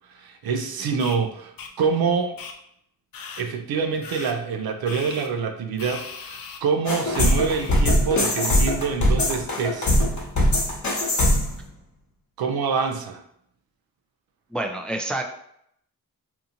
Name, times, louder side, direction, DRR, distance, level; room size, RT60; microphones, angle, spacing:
voice 1, 0.1-2.4 3.4-10.0 12.4-13.2, right 5 dB, 75° right, 5 dB, 0.5 m, -26 dB
sound 1, 1.0-1.2 1.6-1.7 2.4-2.5 3.1-3.4 4.0-4.3 4.9-5.3 5.8-6.6 7.1-7.8, left 5 dB, 70° left, 0.5 m, -38 dB
sound 2, 6.9-11.6, left 1 dB, 50° left, 1.0 m, -21 dB
voice 2, 14.5-15.2, right 2 dB, 5° left, 3 dB, 0.3 m, -27 dB
2.7 x 2.4 x 2.7 m, 0.71 s
cardioid pair, 55°, 36 cm